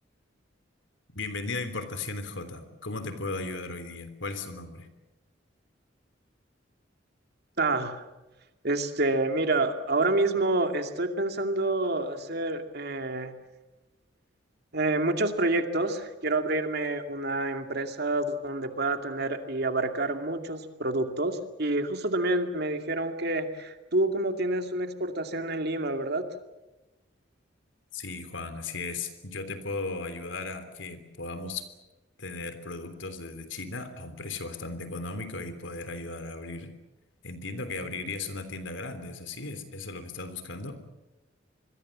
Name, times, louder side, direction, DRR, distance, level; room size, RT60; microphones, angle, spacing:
voice 1, 1.1-4.9 27.9-31.6 32.2-36.7 37.2-40.8, left 3 dB, 80° left, 10 dB, 3.4 m, -36 dB
voice 2, 7.6-8.0 8.6-13.3 14.7-26.2, right 2 dB, 60° right, 6 dB, 2.4 m, -28 dB
26.5 x 22.0 x 7.5 m, 1.0 s
head